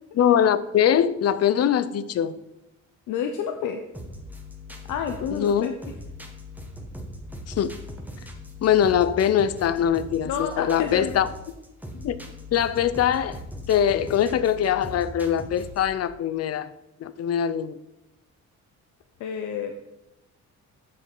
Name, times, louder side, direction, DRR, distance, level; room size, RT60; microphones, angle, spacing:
voice 1, 0.2-2.4 5.3-5.7 7.5-7.7 8.6-11.3 12.0-12.2 12.5-13.4 13.7-16.7 17.0-17.8, left 9 dB, 55° left, 0.6 m, -22 dB
voice 2, 3.1-3.8 4.9-5.7 10.2-11.1 19.2-19.7, left 7 dB, 85° left, 0.8 m, -29 dB
sound 1, 3.9-16.0, left 1 dB, 5° right, 1.4 m, -40 dB
7.7 x 6.1 x 5.4 m
cardioid pair, 90°, 30 cm